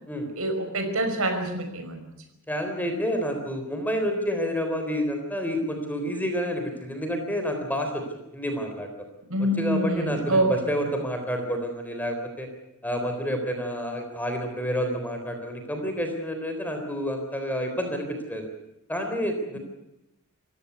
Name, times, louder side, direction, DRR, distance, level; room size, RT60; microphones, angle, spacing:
voice 1, 0.4-2.0 9.3-10.8 19.5-19.6, right 1 dB, 75° right, 6 dB, 5.5 m, -26 dB
voice 2, 2.5-8.0 8.3-8.9 9.6-12.5 12.8-18.5 18.9-19.6, equal, 10° left, 5 dB, 3.8 m, -29 dB
27.0 x 15.5 x 8.3 m, 0.90 s
head